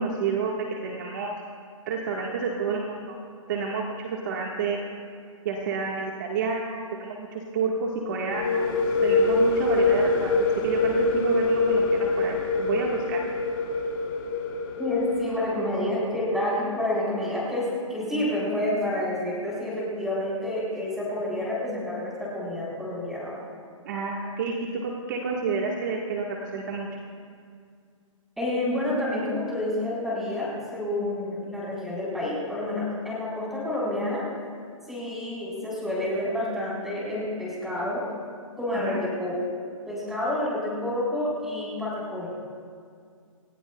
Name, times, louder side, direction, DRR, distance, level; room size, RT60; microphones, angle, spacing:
voice 1, 0.0-1.4 1.9-3.2 3.5-4.8 5.4-13.2 23.8-26.9 38.7-39.0, right 4 dB, 35° right, -1 dB, 1.5 m, -29 dB
sound 1, 8.3-15.9, left 3 dB, 40° left, 4.1 m, -25 dB
voice 2, 14.8-23.4 28.4-34.2 34.9-38.0 38.6-39.4 39.9-42.3, left 1 dB, ahead, -7 dB, 4.1 m, -29 dB
28.0 x 16.0 x 2.3 m, 2.2 s
hypercardioid pair, 170°, 17 cm